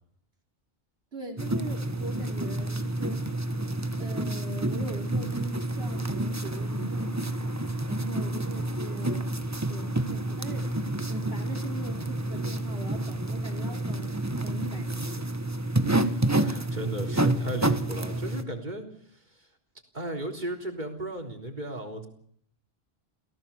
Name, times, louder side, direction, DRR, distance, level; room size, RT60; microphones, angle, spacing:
voice 1, 1.1-3.2 4.0-7.5 7.9-9.3 9.6-10.8 11.1-14.2 14.4-15.3, right 1 dB, 75° right, 2 dB, 3.6 m, -40 dB
sound 1, 1.4-18.4, right 1 dB, 15° right, 1.2 m, -29 dB
voice 2, 16.4-18.9 19.9-22.1, right 1 dB, 45° right, 3 dB, 4.0 m, -35 dB
28.5 x 17.0 x 7.1 m, 0.63 s
omnidirectional pair, 1.1 m